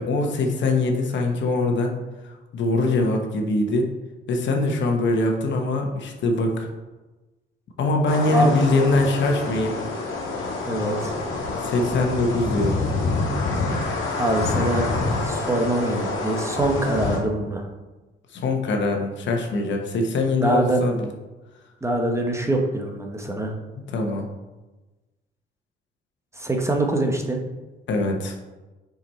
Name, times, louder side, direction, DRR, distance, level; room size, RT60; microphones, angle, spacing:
voice 1, 0.0-1.9 2.2-3.9 4.3-6.7 7.8-9.7 11.6-12.8 18.3-21.1 23.9-24.3 27.9-28.4, left 2 dB, 65° left, 2 dB, 1.1 m, -23 dB
sound 1, 8.1-17.2, left 3 dB, 85° left, 1.4 m, -27 dB
voice 2, 10.7-11.1 14.2-14.9 15.2-17.7 20.4-20.8 21.8-23.5 26.3-27.4, right 1 dB, 15° right, 2 dB, 1.1 m, -24 dB
5.7 x 5.2 x 4.3 m, 1.1 s
cardioid pair, 90°, 20 cm